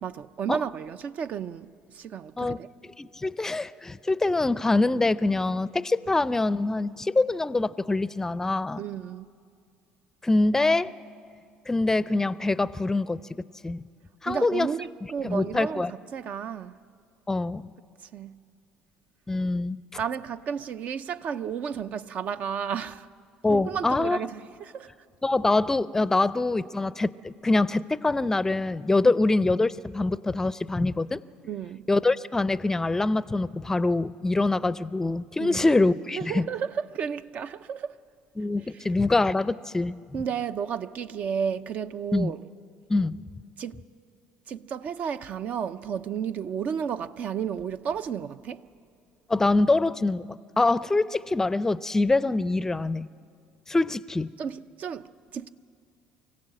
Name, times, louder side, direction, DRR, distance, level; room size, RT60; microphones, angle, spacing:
voice 1, 0.0-2.7 8.7-9.3 14.3-16.8 18.0-18.4 20.0-23.1 23.5-24.9 29.0-29.1 31.4-31.9 35.4-35.7 36.1-38.0 38.7-38.8 40.1-42.4 43.6-43.8 44.5-48.7 54.4-55.5, right 7 dB, 55° right, 0.6 m, -32 dB
voice 2, 3.0-8.8 10.2-10.9 11.7-13.8 14.2-14.7 15.2-15.9 17.3-17.7 19.3-19.8 23.4-24.2 25.2-31.2 31.9-36.5 38.4-40.0 42.1-42.3 42.9-43.2 49.3-53.1 53.7-54.3, left 2 dB, 15° left, 0.5 m, -24 dB
24.5 x 16.5 x 7.7 m
supercardioid pair, 85°, 3 cm